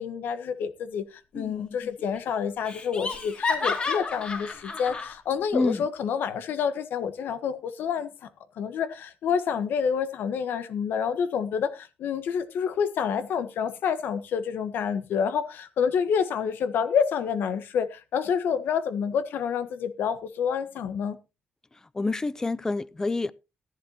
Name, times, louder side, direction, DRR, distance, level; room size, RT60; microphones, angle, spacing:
voice 1, 0.0-8.3 8.6-21.2, left 7 dB, 75° left, 1.3 m, -28 dB
Laughter, 1.3-1.9 2.2-2.3 2.7-5.1, left 4 dB, 35° left, 2.9 m, -31 dB
voice 2, 5.5-5.8 22.0-23.3, left 3 dB, 15° left, 0.5 m, -27 dB
14.5 x 11.0 x 2.9 m
cardioid pair, 140°, 3 cm